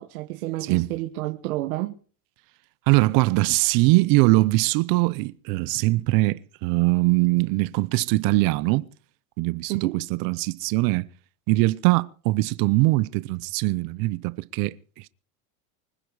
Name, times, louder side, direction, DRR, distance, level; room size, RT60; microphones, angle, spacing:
voice 1, 0.0-1.9 9.7-10.0, right 17 dB, 80° right, 1.5 m, -30 dB
voice 2, 2.9-8.9 9.4-11.1 11.5-15.1, right 22 dB, 55° right, 0.7 m, -22 dB
24.5 x 10.0 x 4.9 m
supercardioid pair, 135°, 42 cm